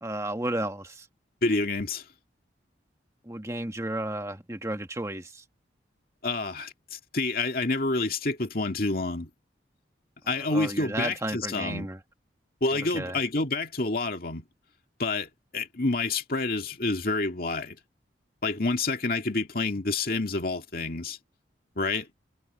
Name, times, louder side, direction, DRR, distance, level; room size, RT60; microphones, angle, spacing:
voice 1, 0.0-1.0 3.2-5.4 10.4-12.0 12.9-13.2, right 1 dB, 15° right, 1.4 m, -33 dB
voice 2, 1.4-2.1 6.2-9.3 10.3-11.9 12.6-14.5 15.0-17.8 18.4-21.2 21.8-22.1, left 3 dB, 50° left, 2.4 m, -28 dB
head